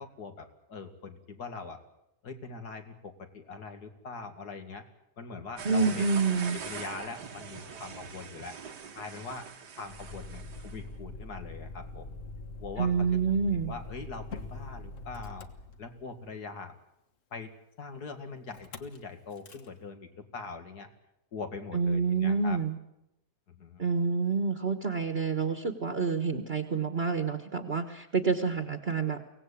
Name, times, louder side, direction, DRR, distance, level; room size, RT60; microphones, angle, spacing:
voice 1, 0.0-1.8 2.2-4.8 5.2-6.1 6.5-8.5 9.0-9.5 9.7-12.2 12.6-13.1 13.5-15.5 15.8-16.7 17.3-17.5 17.8-20.9 21.3-22.6 23.5-23.8, left 4 dB, 70° left, 6 dB, 2.7 m, -42 dB
voice 2, 5.6-6.6 12.8-13.7 21.7-22.7 23.8-29.2, right 5 dB, 40° right, 7 dB, 1.5 m, -28 dB
sound 1, 5.6-10.8, right 6 dB, 90° right, 2.2 m, -43 dB
Motor vehicle (road), 9.8-16.3 18.5-19.0 19.3-19.7, left 2 dB, 50° left, 1.7 m, -43 dB
24.0 x 17.5 x 8.5 m, 0.85 s
omnidirectional pair, 1.7 m